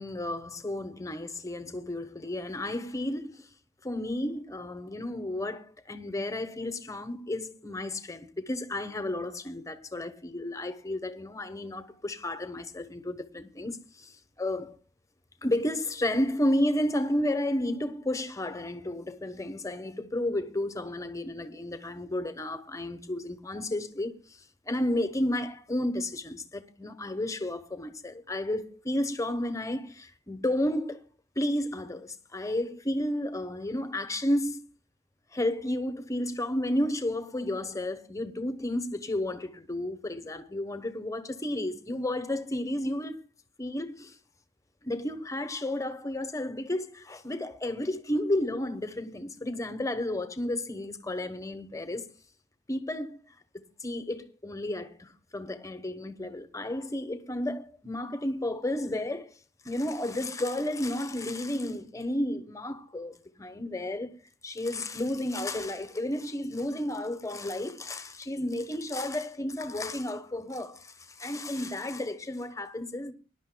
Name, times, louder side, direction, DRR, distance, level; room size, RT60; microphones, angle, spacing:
voice 1, 0.0-3.5 3.8-14.8 15.4-31.0 31.4-34.6 35.3-43.2 43.6-44.2 44.8-52.1 52.7-53.2 53.5-59.3 59.6-73.1, left 1 dB, 15° left, 1.0 m, -32 dB
24.0 x 11.0 x 2.2 m
head